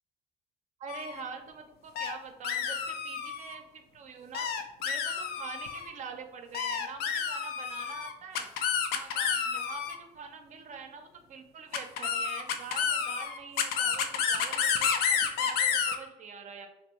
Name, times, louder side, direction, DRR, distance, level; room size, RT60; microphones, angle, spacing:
voice 1, 0.8-4.5 4.8-8.5 8.9-16.7, right 5 dB, 45° right, 5 dB, 0.5 m, -45 dB
sound 1, 0.9-1.2 2.0-2.1 2.4-3.6 4.3-5.9 6.5-10.0 11.7-16.0, left 7 dB, 70° left, 0.4 m, -30 dB
2.7 x 2.6 x 3.0 m, 1.0 s
cardioid pair, 110°, 17 cm